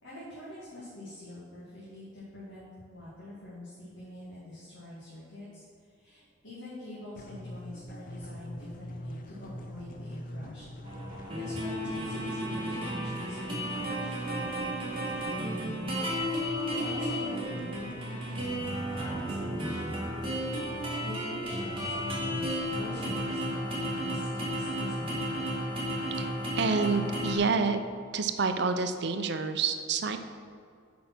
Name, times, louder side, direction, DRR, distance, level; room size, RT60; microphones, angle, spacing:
voice 1, 0.0-5.6 6.0-10.6 11.4-16.0 16.5-20.1 21.0-25.2, left 1 dB, 70° left, -9 dB, 2.1 m, -45 dB
sound 1, 7.2-23.2, equal, 45° left, 0.6 m, -42 dB
sound 2, 10.8-27.4, equal, 25° right, 2.1 m, -33 dB
voice 2, 26.6-27.8 28.1-30.2, right 4 dB, 55° right, 8 dB, 0.6 m, -28 dB
8.4 x 5.2 x 6.0 m, 2.3 s
head